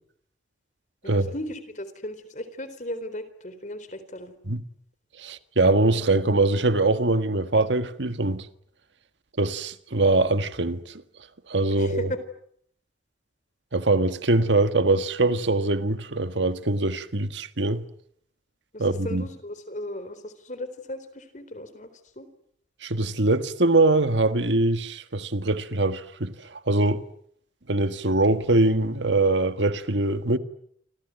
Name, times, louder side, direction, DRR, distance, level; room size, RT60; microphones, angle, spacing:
voice 1, 1.0-4.3 11.7-12.2 18.7-21.9 22.2-22.3, left 1 dB, 40° left, 4.0 m, -36 dB
voice 2, 5.2-8.5 9.4-10.9 11.5-12.1 13.7-17.8 18.8-19.2 22.8-27.0 27.7-30.4, right 2 dB, 80° right, 1.6 m, -23 dB
29.0 x 25.5 x 7.9 m
head